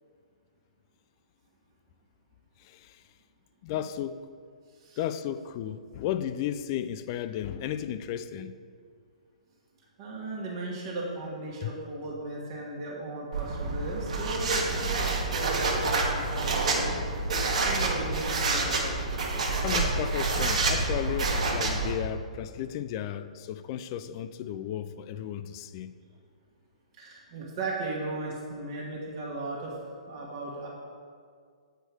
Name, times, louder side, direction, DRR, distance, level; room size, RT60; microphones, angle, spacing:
voice 1, 2.6-3.0 3.6-4.2 5.0-8.5 11.6-11.7 19.6-25.9, left 10 dB, 35° left, 0.3 m, -34 dB
voice 2, 10.0-16.9 17.3-18.9 27.0-29.7 30.1-30.7, right 2 dB, 40° right, 1.3 m, -36 dB
sound 1, 13.3-21.9, right 3 dB, 65° right, 1.2 m, -28 dB
7.8 x 4.5 x 4.6 m
figure-of-eight pair, 120°, 4 cm